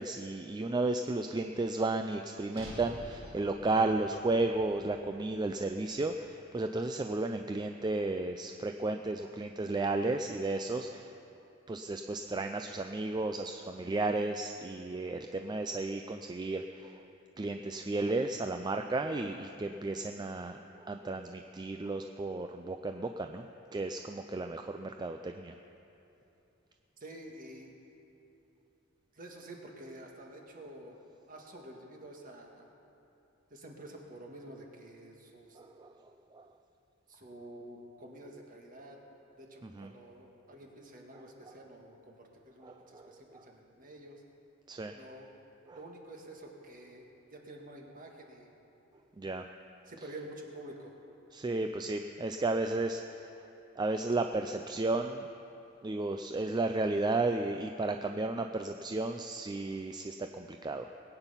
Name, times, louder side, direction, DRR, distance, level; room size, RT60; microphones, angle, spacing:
voice 1, 0.0-11.1 11.7-16.9 17.4-20.6 20.9-23.5 23.7-25.5 35.6-35.9 36.3-36.4 39.8-39.9 42.7-43.0 44.7-44.9 45.7-45.8 49.2-49.4 51.3-53.0 53.8-55.3 55.8-60.9, right 2 dB, 20° right, 5 dB, 0.4 m, -33 dB
sound 1, 2.5-6.8, equal, 75° right, 4.1 m, -50 dB
voice 2, 27.0-27.7 29.1-31.0 31.3-32.6 33.5-35.6 37.1-39.0 39.4-44.2 44.9-45.3 45.7-48.5 49.9-50.9, right 1 dB, 45° right, 1 dB, 1.8 m, -49 dB
20.0 x 9.0 x 5.7 m, 2.9 s
head